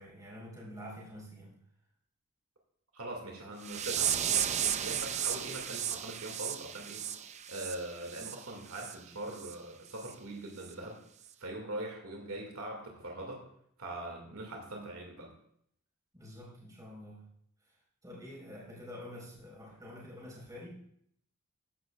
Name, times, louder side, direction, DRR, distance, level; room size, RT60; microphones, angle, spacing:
voice 1, 0.0-1.6 16.1-17.3 17.6-17.8 18.0-20.9, left 1 dB, 15° right, -4 dB, 4.1 m, -47 dB
voice 2, 2.9-7.1 7.5-11.0 11.4-13.4 13.8-15.3, right 1 dB, 85° right, 0 dB, 2.0 m, -42 dB
sound 1, 3.6-8.4 8.7-9.0 9.4-9.5 10.0-10.1 10.6-10.7, right 9 dB, 35° right, 0.4 m, -34 dB
14.5 x 9.7 x 2.3 m, 0.68 s
head